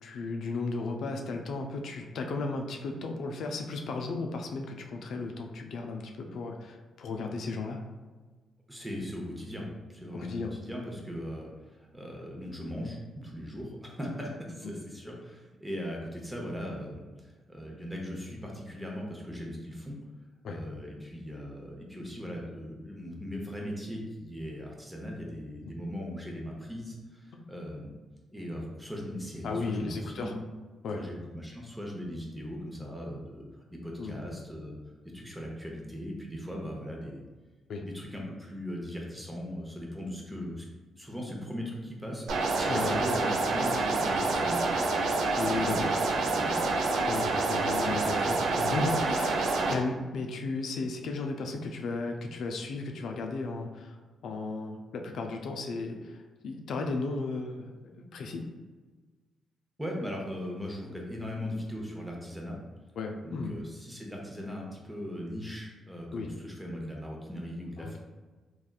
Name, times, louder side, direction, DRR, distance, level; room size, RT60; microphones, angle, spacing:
voice 1, 0.0-7.8 10.1-10.5 14.6-14.8 20.4-20.6 25.6-25.7 27.3-27.4 29.4-30.3 30.8-31.0 34.0-34.2 37.7-37.9 42.7-43.0 45.4-45.9 47.1-54.0 54.2-58.5 63.0-63.6 66.1-66.3 67.8-68.0, left 3 dB, 75° left, 3 dB, 0.3 m, -35 dB
voice 2, 8.7-20.0 20.4-27.9 28.3-30.3 30.9-33.4 33.7-34.7 35.1-37.2 37.8-40.6 41.0-44.8 45.5-46.8 59.8-62.6 63.2-68.0, equal, 5° right, -1 dB, 0.8 m, -39 dB
sound 1, 42.3-49.7, right 3 dB, 75° right, 0.4 m, -27 dB
3.4 x 2.3 x 2.3 m, 1.3 s
cardioid pair, 75°, 0 cm